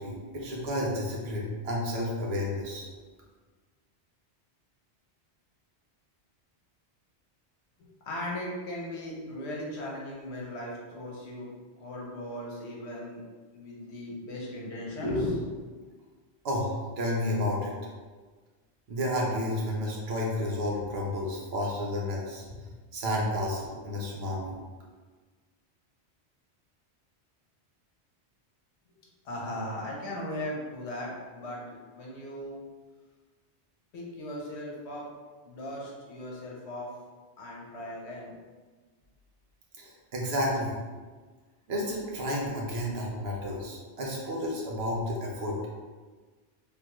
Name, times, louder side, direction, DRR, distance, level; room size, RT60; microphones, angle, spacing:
voice 1, 0.0-2.9 16.4-17.7 18.9-22.7 22.9-24.5 39.8-40.8 41.7-45.6, left 1 dB, 70° right, -2 dB, 1.0 m, -31 dB
voice 2, 7.8-11.5 11.8-13.2 13.5-15.6 29.2-32.6 33.9-35.1 35.4-36.9 37.4-38.4, left 1 dB, 80° left, -3 dB, 1.1 m, -37 dB
3.6 x 2.3 x 3.0 m, 1.4 s
omnidirectional pair, 1.1 m